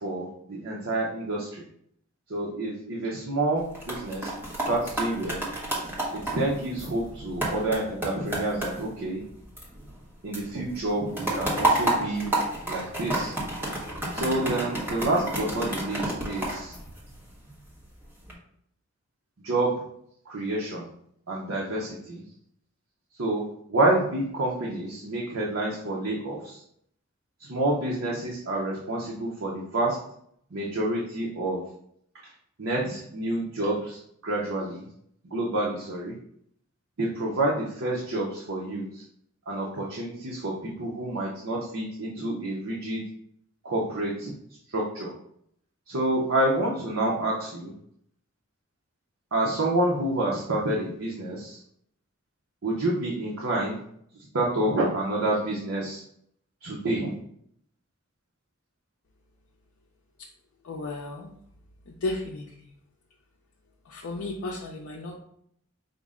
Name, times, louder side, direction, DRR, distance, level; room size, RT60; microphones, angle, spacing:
voice 1, 0.0-1.6 2.3-4.3 4.7-5.4 6.1-9.2 10.2-12.3 12.7-13.4 14.1-16.7 19.4-19.7 20.3-20.9 21.3-22.2 23.2-26.6 27.4-30.0 30.5-31.6 32.6-34.8 35.3-36.2 37.0-39.0 39.5-43.0 43.6-44.3 44.7-45.1 45.9-47.7 49.3-51.6 52.6-53.8 54.3-56.0 56.6-57.1, right 1 dB, 65° right, -3 dB, 0.7 m, -28 dB
sound 1, 3.6-10.1 10.3-17.5 18.0-18.3, right 1 dB, 10° right, 0.9 m, -31 dB
voice 2, 60.6-61.3 61.9-62.7 63.8-65.2, left 2 dB, 70° left, -2 dB, 0.5 m, -34 dB
5.1 x 2.1 x 3.6 m, 0.69 s
head